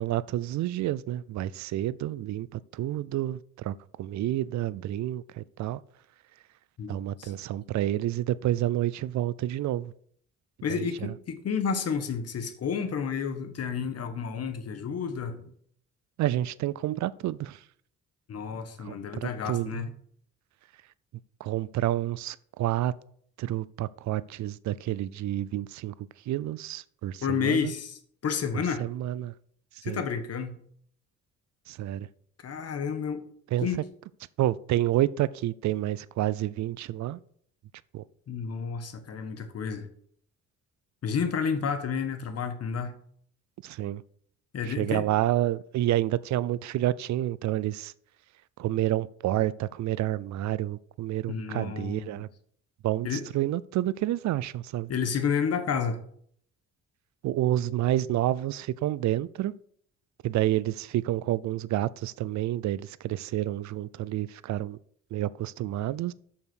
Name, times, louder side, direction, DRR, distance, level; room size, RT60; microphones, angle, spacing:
voice 1, 0.0-5.8 6.9-9.9 10.8-11.1 16.2-17.6 18.8-19.9 21.4-23.0 23.4-25.9 26.3-27.7 28.8-29.3 29.7-30.0 31.7-32.1 33.5-33.8 34.4-37.2 37.9-38.0 43.6-44.0 44.6-47.9 48.6-52.3 52.8-54.9 57.2-59.5 60.2-64.8 65.1-66.1, right 14 dB, 70° right, 0.5 m, -29 dB
voice 2, 6.8-7.3 10.6-15.5 18.3-19.9 27.2-28.8 29.8-30.6 32.4-33.2 33.6-33.8 38.3-39.9 41.0-43.0 44.5-45.1 51.3-52.2 53.0-53.3 54.9-56.0, left 6 dB, 55° left, 1.3 m, -31 dB
6.8 x 5.6 x 6.2 m
cardioid pair, 90°, 30 cm